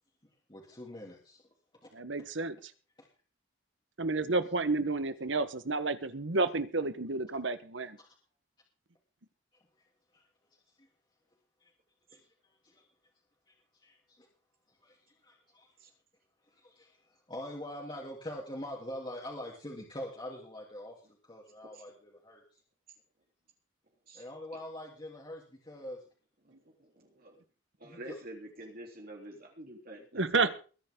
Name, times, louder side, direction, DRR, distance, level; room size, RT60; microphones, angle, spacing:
voice 1, 0.5-1.4 1.8-1.9 8.0-8.1 10.1-10.2 10.8-10.9 11.6-11.7 12.1-12.2 12.6-12.8 13.8-14.3 14.8-15.0 15.2-15.7 16.5-17.0 17.3-20.9 21.2-22.4 24.1-26.0 27.8-28.1, left 1 dB, 25° left, -3 dB, 3.4 m, -44 dB
voice 2, 1.9-2.7 4.0-8.0 30.1-30.5, right 3 dB, 65° right, 13 dB, 1.3 m, -30 dB
voice 3, 26.5-27.4 27.8-30.5, right 1 dB, 50° right, 0 dB, 3.6 m, -47 dB
22.0 x 10.0 x 3.8 m, 0.37 s
head